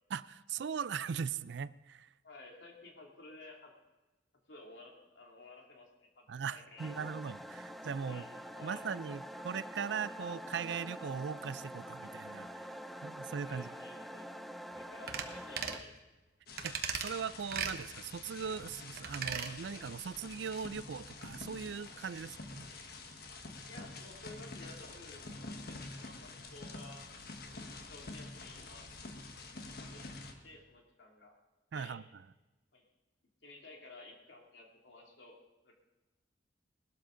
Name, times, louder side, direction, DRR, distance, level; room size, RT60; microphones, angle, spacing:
voice 1, 0.1-2.1 6.3-8.2 8.6-13.7 16.6-22.7 31.7-32.0, right 6 dB, 75° right, 18 dB, 0.4 m, -39 dB
voice 2, 2.2-3.7 4.5-6.2 6.5-7.1 8.0-8.3 8.5-8.8 13.2-14.5 14.7-15.9 23.6-27.0 27.6-28.9 29.8-30.0 30.3-31.3 31.7-32.0 32.7-32.8 33.4-35.4 35.6-35.7, left 2 dB, 85° left, 0 dB, 2.6 m, -54 dB
sound 1, 6.8-15.8, equal, ahead, 0.5 m, -46 dB
sound 2, 15.1-15.3 15.6-15.8 16.6-17.1 17.5-17.8 19.0-19.5 19.9-20.0, right 7 dB, 55° right, 1.1 m, -37 dB
sound 3, 16.5-30.3, left 3 dB, 55° left, 1.3 m, -47 dB
19.5 x 12.5 x 3.8 m, 1.1 s
head